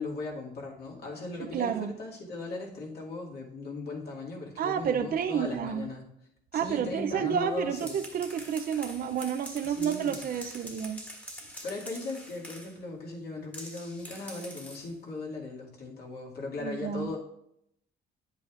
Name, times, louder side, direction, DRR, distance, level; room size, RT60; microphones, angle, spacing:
voice 1, 0.0-6.0 6.5-8.0 9.7-10.6 11.6-17.2, left 3 dB, 60° left, -3 dB, 2.3 m, -38 dB
voice 2, 1.4-1.9 4.6-5.9 6.5-11.0 16.6-17.1, right 8 dB, 55° right, 8 dB, 0.6 m, -30 dB
sound 1, 7.5-12.8 13.5-14.9, equal, 10° left, 1.6 m, -45 dB
9.5 x 8.4 x 2.5 m, 0.76 s
cardioid pair, 110°, 18 cm